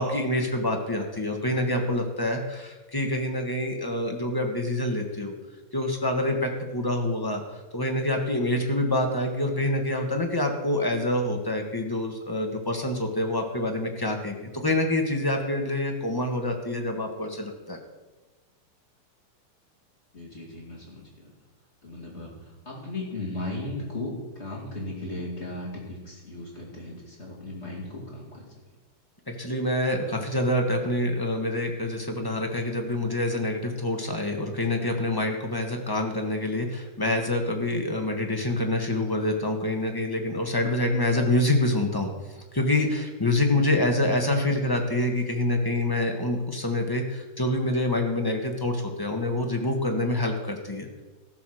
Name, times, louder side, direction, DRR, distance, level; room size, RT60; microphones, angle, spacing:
voice 1, 0.0-5.3 5.7-17.8 29.3-42.1 42.5-50.9, left 1 dB, 15° left, 2 dB, 0.9 m, -26 dB
voice 2, 20.1-21.3 21.8-22.3 22.6-28.5, left 2 dB, 30° left, -4 dB, 2.6 m, -36 dB
15.0 x 5.9 x 6.3 m, 1.2 s
omnidirectional pair, 2.4 m